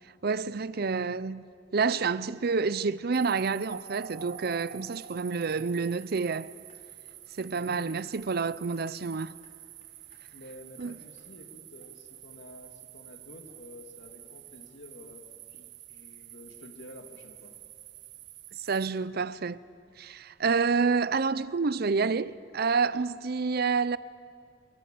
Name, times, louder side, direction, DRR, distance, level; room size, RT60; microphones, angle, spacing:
voice 1, 0.2-1.4 1.7-6.5 7.4-9.3 10.8-10.9 18.5-19.6 20.0-24.0, right 4 dB, 55° right, 0.6 m, -28 dB
sound 1, 3.1-18.9, right 10 dB, 80° right, 1.3 m, -48 dB
sound 2, 5.0-5.4 5.7-6.1 6.4-6.8 7.1-7.5 7.8-8.1 8.4-8.9 9.1-9.5 9.8-10.2 10.5-10.9 11.2-11.3, left 3 dB, 40° left, 3.8 m, -63 dB
voice 2, 7.5-7.9 10.3-15.2 15.5-17.5, left 1 dB, 75° left, 2.6 m, -50 dB
26.5 x 23.5 x 7.7 m
head